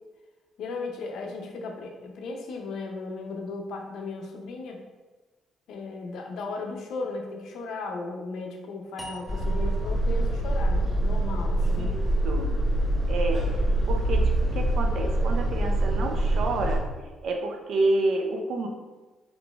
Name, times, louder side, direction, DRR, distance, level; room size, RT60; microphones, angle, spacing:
voice 1, 0.6-4.8 5.7-12.0, left 3 dB, 80° left, 2 dB, 0.5 m, -36 dB
sound 1, 9.0-12.2, right 1 dB, 10° left, 0.4 m, -47 dB
sound 2, 9.3-16.8, right 1 dB, 5° right, 1.2 m, -25 dB
voice 2, 11.8-12.6 13.1-13.5 13.9-16.9 17.2-18.7, right 2 dB, 70° right, 3 dB, 0.5 m, -29 dB
3.8 x 3.0 x 2.3 m, 1.2 s
cardioid pair, 90°, 0 cm